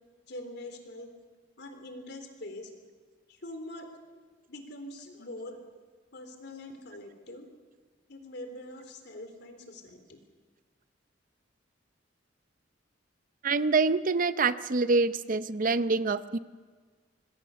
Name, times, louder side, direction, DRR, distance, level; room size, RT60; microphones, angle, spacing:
voice 1, 0.3-1.1 1.6-2.7 3.3-3.9 4.5-5.6 6.1-7.5 8.1-10.2, left 1 dB, 65° left, 6 dB, 3.6 m, -43 dB
voice 2, 13.4-16.4, right 4 dB, 45° right, 13 dB, 0.7 m, -26 dB
26.5 x 21.0 x 7.0 m, 1.5 s
head